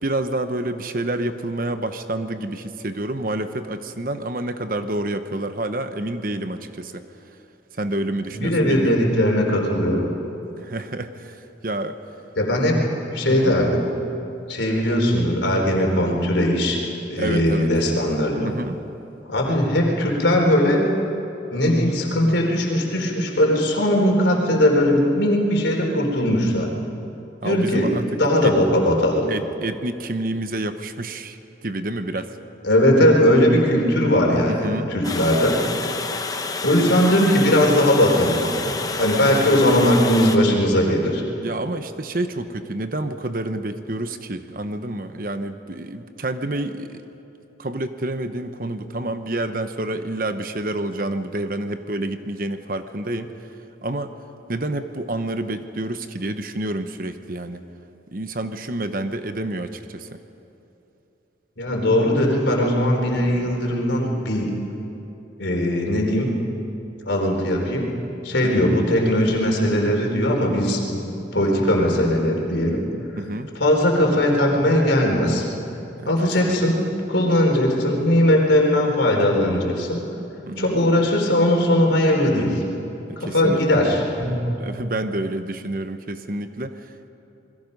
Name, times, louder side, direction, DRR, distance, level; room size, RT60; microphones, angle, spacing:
voice 1, 0.0-7.1 7.8-9.0 10.6-12.0 13.3-13.5 17.2-17.7 18.4-18.8 27.4-28.0 28.4-28.6 29.3-32.4 34.5-34.9 41.4-47.0 47.6-53.3 53.8-54.1 54.5-57.6 58.1-60.2 68.4-68.6 73.2-73.5 76.0-76.1 76.4-76.6 80.5-80.8 83.1-83.8 84.6-87.1, right 1 dB, 50° right, 9 dB, 1.0 m, -28 dB
voice 2, 8.3-10.1 12.4-12.8 13.1-13.8 14.5-16.8 17.1-18.5 19.3-20.9 21.5-26.7 27.4-27.9 28.2-29.2 32.6-35.6 36.6-41.2 61.6-64.5 65.4-66.3 67.0-67.9 68.2-71.0 71.3-72.8 73.5-75.4 76.1-80.0 80.6-82.6 83.2-84.4, left 1 dB, 80° left, 1 dB, 3.9 m, -19 dB
Water, 35.0-40.4, left 4 dB, 20° left, 0.8 m, -29 dB
28.0 x 21.5 x 5.4 m, 2.9 s
head